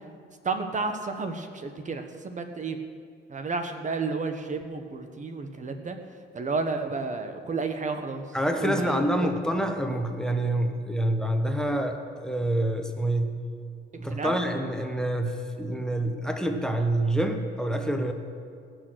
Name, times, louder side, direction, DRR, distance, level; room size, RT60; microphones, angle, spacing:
voice 1, 0.4-2.8 3.3-6.0 6.3-8.2 8.6-9.3 14.1-14.4, right 4 dB, 40° right, 6 dB, 1.0 m, -31 dB
voice 2, 8.3-13.4 14.0-18.1, right 1 dB, 5° left, 5 dB, 1.0 m, -27 dB
18.0 x 6.4 x 6.3 m, 2.3 s
cardioid pair, 90°, 20 cm